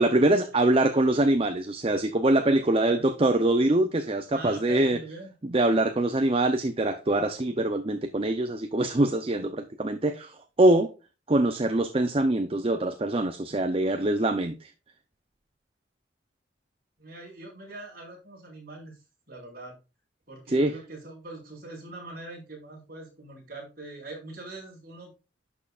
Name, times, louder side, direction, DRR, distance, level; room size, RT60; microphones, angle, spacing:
voice 1, 0.0-5.0 5.4-10.9 11.3-14.7 20.5-20.7, right 1 dB, 30° right, 0.6 m, -24 dB
voice 2, 2.1-3.1 4.3-5.3 17.0-19.7 20.3-25.1, right 2 dB, 50° right, 5.0 m, -43 dB
11.0 x 6.4 x 2.4 m
head